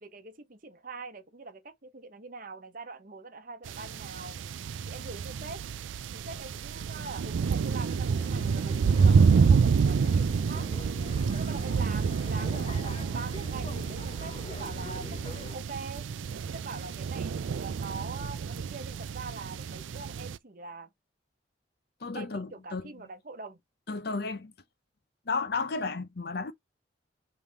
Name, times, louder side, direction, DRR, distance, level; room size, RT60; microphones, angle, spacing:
voice 1, 0.0-4.4 4.9-5.6 6.1-10.7 11.3-16.1 16.5-20.9 22.1-23.6, right 3 dB, 45° right, 0.9 m, -43 dB
sound 1, 3.7-20.4, right 5 dB, 85° right, 0.4 m, -28 dB
sound 2, 8.2-15.6, left 3 dB, 30° left, 0.4 m, -45 dB
voice 2, 22.0-22.9 23.9-24.5 25.3-26.5, left 4 dB, 55° left, 0.7 m, -33 dB
5.4 x 3.3 x 2.9 m
head